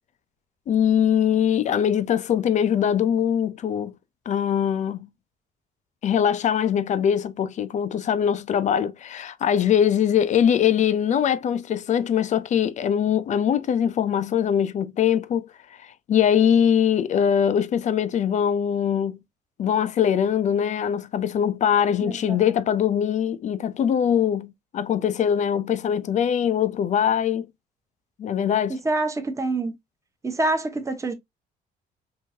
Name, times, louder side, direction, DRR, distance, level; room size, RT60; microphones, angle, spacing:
voice 1, 0.7-3.9 4.3-5.1 6.0-15.5 16.1-19.2 19.6-27.5 28.2-28.8, left 8 dB, 45° left, 0.5 m, -22 dB
voice 2, 22.0-22.4 28.8-29.7 30.2-31.1, right 2 dB, 20° right, 1.0 m, -26 dB
4.6 x 2.7 x 2.7 m
cardioid pair, 110°, 17 cm